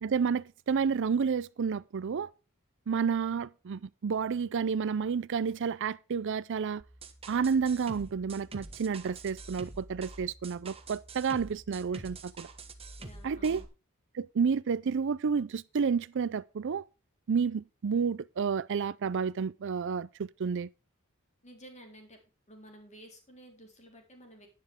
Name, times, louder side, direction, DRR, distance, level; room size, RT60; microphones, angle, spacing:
voice 1, 0.0-2.3 2.9-6.8 7.3-12.5 13.2-13.6 14.1-16.8 17.3-20.7, right 6 dB, 60° right, 0.4 m, -30 dB
sound 1, 6.8-13.6, right 3 dB, 25° right, 1.4 m, -47 dB
voice 2, 13.0-13.7 21.4-22.2 22.5-24.5, equal, 35° left, 4.0 m, -52 dB
11.5 x 10.5 x 3.6 m
head